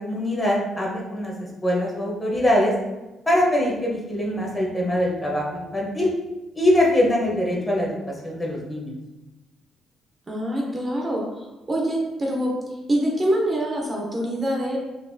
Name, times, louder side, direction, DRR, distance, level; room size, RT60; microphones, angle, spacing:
voice 1, 0.0-1.3 1.6-2.7 3.3-6.1 6.5-8.0 8.2-8.9, left 1 dB, 20° left, -3 dB, 1.0 m, -22 dB
voice 2, 10.3-11.2 11.7-14.8, right 1 dB, 30° right, -1 dB, 0.7 m, -25 dB
4.1 x 2.6 x 2.6 m, 1.0 s
cardioid pair, 90°, 0 cm